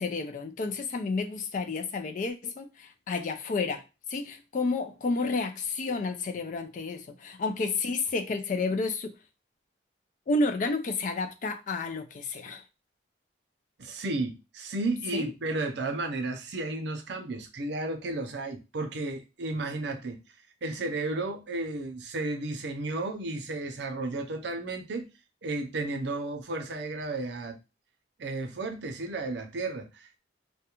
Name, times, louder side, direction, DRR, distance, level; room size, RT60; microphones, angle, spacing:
voice 1, 0.0-3.8 4.1-9.1 10.3-12.6 15.1-15.3, left 3 dB, 40° left, 0.3 m, -31 dB
voice 2, 13.8-20.2 20.6-25.1 25.4-27.6 28.2-30.2, right 2 dB, 60° right, 0.5 m, -33 dB
2.4 x 2.1 x 2.9 m
head